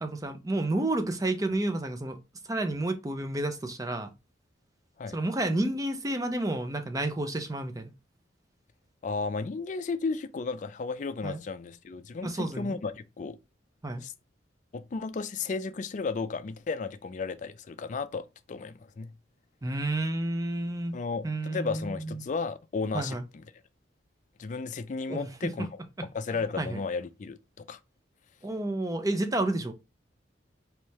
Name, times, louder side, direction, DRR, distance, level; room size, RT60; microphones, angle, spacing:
voice 1, 0.0-2.2 2.5-4.1 5.1-7.9 11.2-11.4 12.2-12.8 13.8-14.1 19.6-21.0 21.2-22.2 22.9-23.2 25.1-25.7 26.0-26.1 26.6-26.8 28.4-29.7, right 2 dB, 20° right, 0.5 m, -30 dB
voice 2, 9.0-13.4 14.0-14.1 14.7-19.1 20.9-23.4 24.4-25.7 26.1-27.8, left 4 dB, 40° left, 0.3 m, -34 dB
4.4 x 3.2 x 2.8 m
head